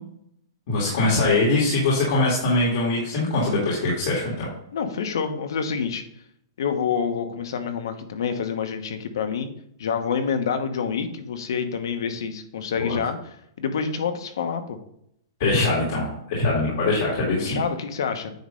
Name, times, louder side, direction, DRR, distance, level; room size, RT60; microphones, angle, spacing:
voice 1, 0.7-4.5 12.8-13.0 15.4-17.6, left 2 dB, 50° left, -5 dB, 2.4 m, -22 dB
voice 2, 4.7-6.0 6.6-9.5 9.8-14.8 17.4-18.3, left 6 dB, 75° left, 7 dB, 1.0 m, -27 dB
9.3 x 3.1 x 5.3 m, 0.72 s
hypercardioid pair, 170°, 2 cm